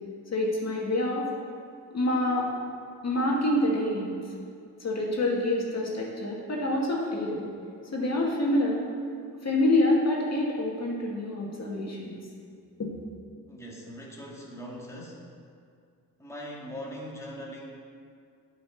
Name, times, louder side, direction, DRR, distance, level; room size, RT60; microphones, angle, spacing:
voice 1, 0.3-1.3 1.9-2.5 3.0-4.1 4.8-7.5 7.9-8.9 9.4-12.2 12.8-12.9, left 1 dB, 40° left, -2 dB, 2.0 m, -26 dB
voice 2, 13.5-15.3 16.2-17.6, equal, 5° left, -4 dB, 1.9 m, -41 dB
8.5 x 5.3 x 6.3 m, 2.3 s
supercardioid pair, 65°, 39 cm